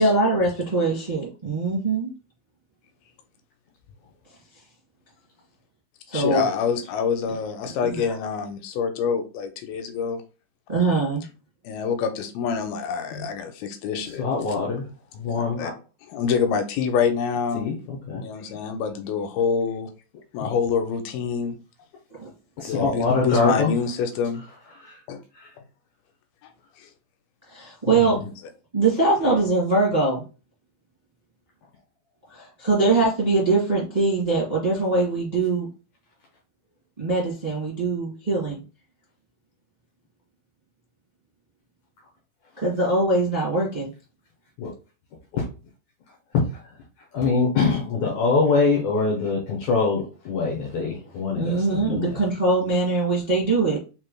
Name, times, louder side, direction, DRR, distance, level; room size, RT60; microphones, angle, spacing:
voice 1, 0.0-2.1 6.1-6.4 7.8-8.0 10.7-11.2 22.2-22.3 27.5-28.2 28.7-30.2 32.3-35.7 37.0-38.6 42.6-43.9 51.3-53.8, right 3 dB, 70° right, -6 dB, 0.4 m, -22 dB
voice 2, 6.1-10.2 11.6-14.2 15.4-15.7 16.1-17.7 18.2-19.9 20.3-21.6 22.6-24.4 25.1-25.2 26.4-26.5 26.8-26.9 28.2-28.3, left 6 dB, 85° left, 7 dB, 2.4 m, -26 dB
voice 3, 14.2-14.9 15.1-15.7 17.5-18.2 22.6-23.8 24.8-25.0 25.4-25.5 27.9-28.2 44.6-44.7 45.3-45.5 46.3-46.4 47.1-52.2, left 4 dB, 70° left, -1 dB, 2.0 m, -24 dB
5.6 x 3.1 x 2.2 m, 0.33 s
omnidirectional pair, 4.2 m